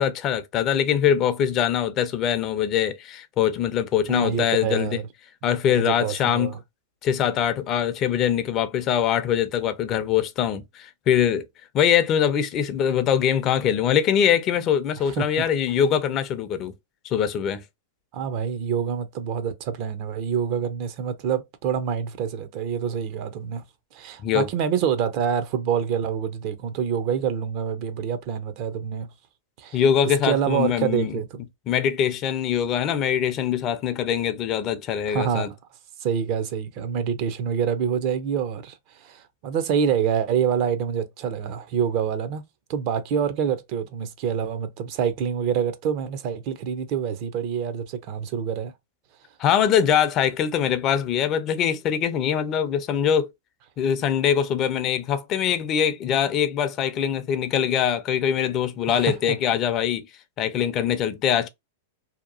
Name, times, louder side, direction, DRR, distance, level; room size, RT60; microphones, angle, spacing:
voice 1, 0.0-5.0 5.4-6.5 7.0-11.4 11.7-16.7 17.0-17.6 24.2-24.5 29.7-31.1 31.7-35.5 49.4-53.3 53.8-60.1 60.4-61.5, left 9 dB, 35° left, 0.5 m, -23 dB
voice 2, 4.1-5.1 5.5-5.6 5.8-6.6 15.0-15.3 18.1-23.6 23.9-29.1 29.6-29.8 30.2-31.4 35.1-35.6 36.0-42.4 42.7-48.7 58.9-59.2, right 7 dB, 50° right, 0.6 m, -26 dB
2.8 x 2.3 x 2.5 m
hypercardioid pair, 115°, 0 cm